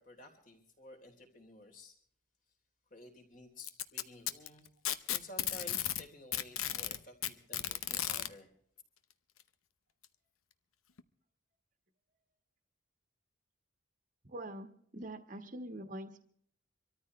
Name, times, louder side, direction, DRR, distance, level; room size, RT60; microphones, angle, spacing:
voice 1, 0.0-2.0 2.9-4.7 5.1-8.5, left 1 dB, 40° left, 4 dB, 3.5 m, -53 dB
Packing tape duct tape, 3.6-6.0 6.3-8.3 9.4-9.5 10.0-10.1 11.0-11.1, left 12 dB, 90° left, 0.9 m, -35 dB
voice 2, 14.2-16.2, right 1 dB, 40° right, 6 dB, 1.4 m, -44 dB
25.5 x 13.5 x 3.2 m, 0.62 s
head